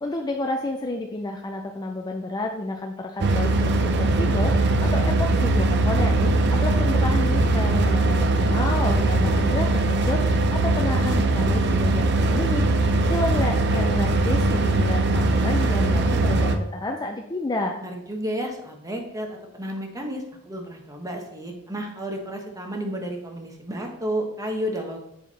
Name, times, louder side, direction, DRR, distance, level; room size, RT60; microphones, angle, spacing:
voice 1, 0.0-6.2 6.5-17.8, left 2 dB, 20° left, 2 dB, 0.4 m, -30 dB
sound 1, 3.2-16.5, right 2 dB, 50° right, 0.6 m, -21 dB
voice 2, 8.7-9.0 17.8-25.0, equal, 15° right, 2 dB, 1.1 m, -32 dB
7.3 x 4.6 x 4.1 m, 0.81 s
head